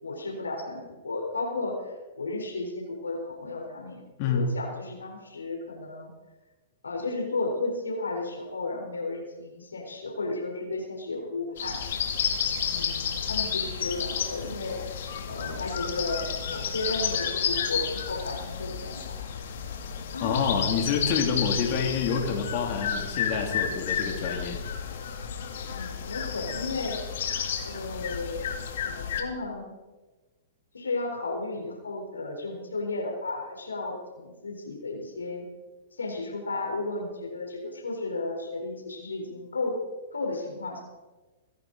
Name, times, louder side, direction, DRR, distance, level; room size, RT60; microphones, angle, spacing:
voice 1, 0.0-6.1 6.8-11.8 12.6-14.8 15.3-19.2 19.7-19.8 20.1-20.4 25.7-27.0 27.6-28.5 28.8-29.7 30.7-35.5 36.0-39.8 40.1-40.8, left 2 dB, 90° left, 1 dB, 4.0 m, -34 dB
voice 2, 4.2-4.5 20.2-24.6, left 6 dB, 45° left, 1 dB, 2.7 m, -27 dB
sound 1, 11.6-29.2, left 7 dB, 65° left, 2.4 m, -31 dB
25.0 x 11.0 x 4.0 m, 1.2 s
hypercardioid pair, 120°, 0 cm